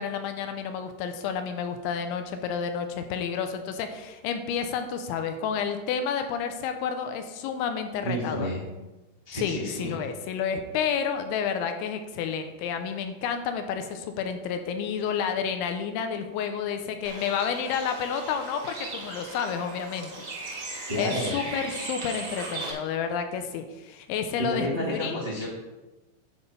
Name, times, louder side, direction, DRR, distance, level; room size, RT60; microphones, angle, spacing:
voice 1, 0.0-8.5 9.4-20.1 20.4-25.2, left 7 dB, 80° left, 7 dB, 3.1 m, -30 dB
voice 2, 8.0-8.6 9.2-9.9 20.9-21.4 24.5-25.5, equal, 40° right, -7 dB, 0.7 m, -30 dB
Bird, 17.0-22.7, right 2 dB, 90° right, 0.9 m, -38 dB
10.0 x 4.3 x 6.8 m, 1.1 s
omnidirectional pair, 5.5 m